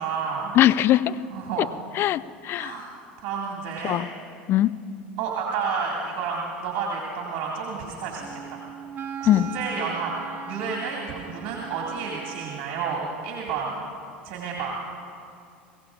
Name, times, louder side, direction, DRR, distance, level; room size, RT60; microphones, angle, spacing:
voice 1, 0.0-0.5 1.3-1.8 2.6-2.9 3.2-4.0 5.2-8.6 9.2-10.1 10.4-13.7 14.2-14.8, right 5 dB, 55° right, -2 dB, 2.1 m, -30 dB
voice 2, 0.6-1.2 1.6-1.7 2.0-2.7 3.8-4.1 4.5-4.7 9.3-9.5, left 13 dB, 45° left, 16 dB, 0.4 m, -20 dB
Wind instrument woodwind instrument, 8.2-13.0, right 7 dB, 30° right, 1.0 m, -39 dB
23.0 x 16.0 x 2.5 m, 2.4 s
hypercardioid pair, 80°, 6 cm